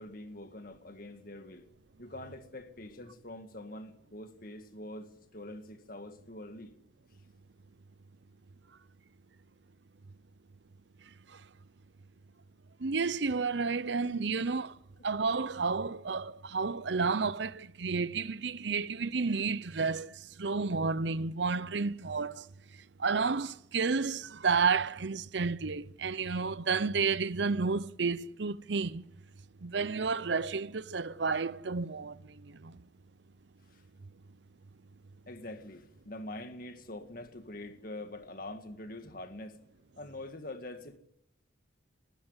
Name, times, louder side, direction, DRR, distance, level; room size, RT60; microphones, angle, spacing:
voice 1, 0.0-1.7 2.0-6.7 13.8-14.4 33.7-33.8 35.3-39.6 40.0-41.0, left 1 dB, 50° left, 1.9 m, -45 dB
voice 2, 12.8-14.8 15.0-22.5 23.0-29.0 29.6-32.8, right 4 dB, 65° right, 0.7 m, -31 dB
20.0 x 14.5 x 9.6 m
head